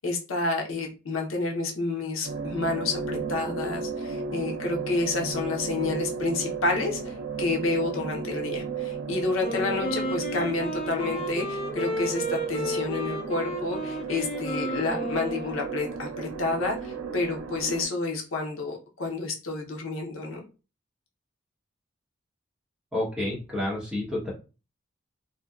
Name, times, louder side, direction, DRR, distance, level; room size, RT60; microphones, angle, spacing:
voice 1, 0.0-20.4, left 3 dB, 85° left, 1 dB, 0.7 m, -29 dB
sound 1, 2.2-17.9, right 5 dB, 85° right, 0.4 m, -34 dB
Wind instrument woodwind instrument, 9.4-16.1, equal, 30° left, 0.6 m, -33 dB
voice 2, 22.9-24.3, left 1 dB, 5° right, -5 dB, 0.8 m, -29 dB
2.6 x 2.1 x 2.3 m, 0.32 s
head